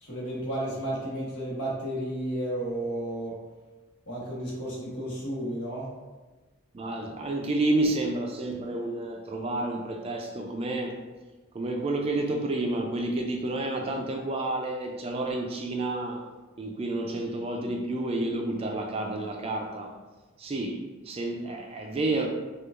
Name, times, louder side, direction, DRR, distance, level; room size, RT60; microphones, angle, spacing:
voice 1, 0.0-3.3 4.1-5.9 7.0-7.1, right 1 dB, 85° left, -5 dB, 1.2 m, -32 dB
voice 2, 6.7-11.0 11.5-16.2 16.6-19.9 20.4-22.3, right 2 dB, 25° right, 2 dB, 0.3 m, -30 dB
4.5 x 2.4 x 2.4 m, 1.2 s
head